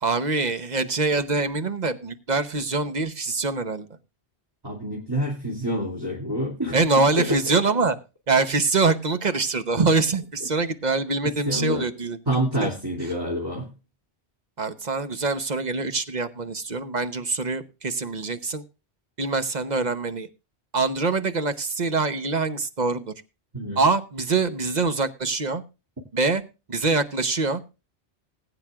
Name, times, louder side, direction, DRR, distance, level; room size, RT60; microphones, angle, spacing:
voice 1, 0.0-3.9 6.7-8.0 8.3-12.2 12.6-12.7 14.6-18.6 19.2-20.3 20.7-23.1 23.8-25.6 26.1-26.4 26.7-27.6, right 3 dB, 45° right, 10 dB, 1.0 m, -24 dB
voice 2, 4.6-6.8 7.2-7.6 11.2-11.9 12.3-13.7 23.5-23.8, equal, 20° right, -2 dB, 2.6 m, -27 dB
20.0 x 8.9 x 2.4 m, 0.29 s
omnidirectional pair, 1.1 m